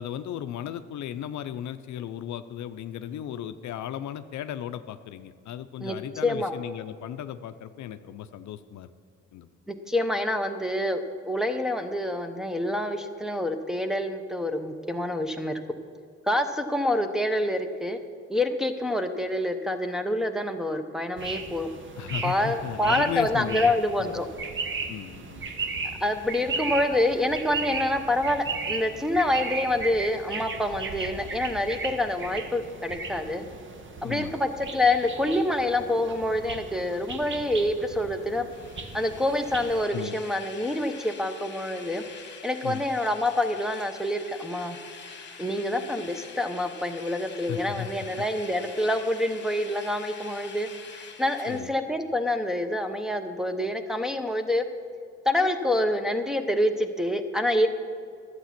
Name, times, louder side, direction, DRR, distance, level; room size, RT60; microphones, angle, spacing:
voice 1, 0.0-8.9 9.3-9.5 22.0-23.7 24.0-24.2 24.9-25.6 34.0-34.3 39.9-40.2 42.6-42.8 47.5-48.2 51.5-51.7, left 10 dB, 70° left, 11 dB, 0.6 m, -36 dB
voice 2, 5.8-6.5 9.7-15.5 16.3-18.0 18.3-21.7 22.2-24.3 26.0-33.4 34.0-38.5 38.9-42.0 42.4-44.8 45.4-50.7 51.0-54.6 55.2-57.7, left 1 dB, ahead, 4 dB, 0.9 m, -27 dB
sound 1, 21.2-39.8, right 4 dB, 40° right, 1.1 m, -36 dB
sound 2, 38.5-51.6, left 5 dB, 35° left, 1.4 m, -45 dB
11.5 x 8.3 x 5.9 m, 2.2 s
cardioid pair, 90°, 30 cm